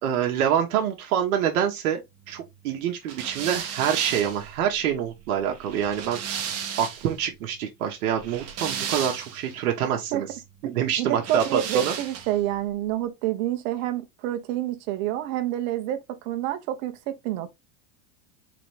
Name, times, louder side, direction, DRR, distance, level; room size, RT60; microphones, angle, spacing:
voice 1, 0.0-6.2 6.8-10.3 10.6-11.9, right 9 dB, 90° right, 1.2 m, -26 dB
sound 1, 3.1-7.2 8.1-9.5 11.2-12.4, right 7 dB, 35° right, 1.2 m, -34 dB
voice 2, 9.8-10.2 10.6-10.7 11.0-17.5, right 12 dB, 65° right, 1.1 m, -28 dB
4.0 x 3.6 x 3.3 m
supercardioid pair, 130°, 43 cm